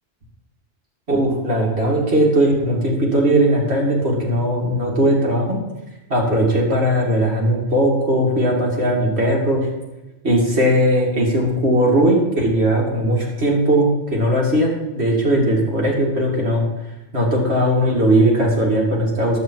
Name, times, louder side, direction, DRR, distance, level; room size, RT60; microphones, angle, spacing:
voice 1, 1.1-5.6 6.1-9.7 10.2-16.6 17.1-19.4, right 1 dB, 80° right, -3 dB, 3.0 m, -18 dB
11.5 x 8.4 x 4.7 m, 1.1 s
omnidirectional pair, 1.1 m